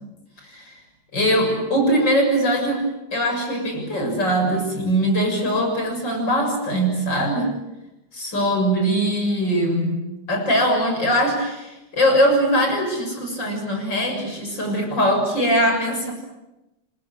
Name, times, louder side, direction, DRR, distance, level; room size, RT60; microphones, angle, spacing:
voice 1, 0.4-0.7 1.1-2.8 3.1-7.5 8.1-10.0 10.3-16.1, equal, 75° left, 4 dB, 7.5 m, -21 dB
29.0 x 26.0 x 7.5 m, 0.97 s
omnidirectional pair, 2.0 m